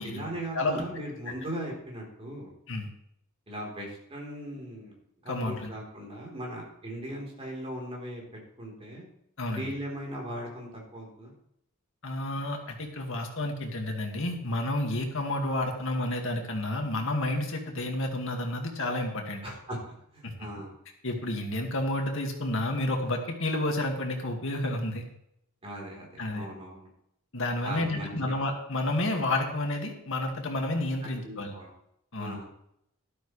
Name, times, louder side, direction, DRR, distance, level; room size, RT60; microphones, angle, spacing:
voice 1, 0.0-2.5 3.5-5.0 5.2-8.2 8.6-9.1 9.5-11.3 19.4-20.7 25.6-26.9 27.6-28.1 31.0-31.7 32.2-32.5, right 1 dB, 25° right, -2 dB, 3.9 m, -39 dB
voice 2, 5.3-5.7 9.4-9.7 12.0-19.4 20.2-20.3 21.0-25.0 26.2-26.5 27.3-31.5 32.1-32.4, left 1 dB, 60° left, 2 dB, 2.1 m, -30 dB
12.5 x 12.5 x 3.3 m, 0.77 s
head